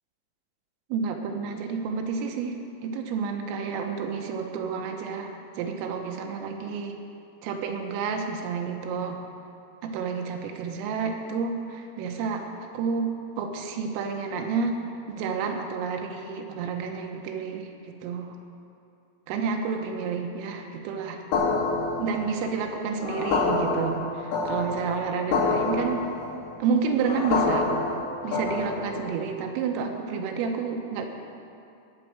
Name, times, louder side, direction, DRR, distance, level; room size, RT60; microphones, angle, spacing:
voice 1, 0.9-7.0 7.4-9.2 9.8-12.5 12.7-13.1 13.4-14.8 15.2-18.4 19.3-21.2 22.0-26.1 26.6-27.7 28.2-31.1, right 5 dB, 85° right, 3 dB, 3.6 m, -30 dB
sound 1, 21.3-29.1, left 3 dB, 85° left, 5.1 m, -27 dB
19.0 x 6.4 x 7.6 m, 2.6 s
omnidirectional pair, 5.9 m